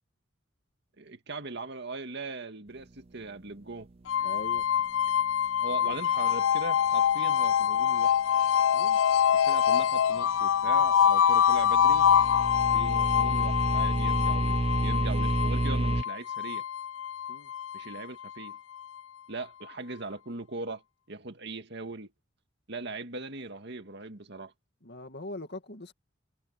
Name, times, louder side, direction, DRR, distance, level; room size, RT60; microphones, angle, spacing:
voice 1, 1.0-3.9 5.6-8.2 9.3-12.1 12.7-16.6 17.7-18.6 19.3-20.8 21.1-22.1 22.7-24.5, right 3 dB, 60° right, 2.1 m, -39 dB
sound 1, 4.1-19.0, left 8 dB, 85° left, 0.5 m, -25 dB
voice 2, 4.2-4.6 5.8-5.9 8.7-9.0 17.3-17.5 24.8-25.9, left 2 dB, 60° left, 2.3 m, -41 dB
sound 2, 11.5-16.0, right 2 dB, 30° right, 0.6 m, -29 dB
head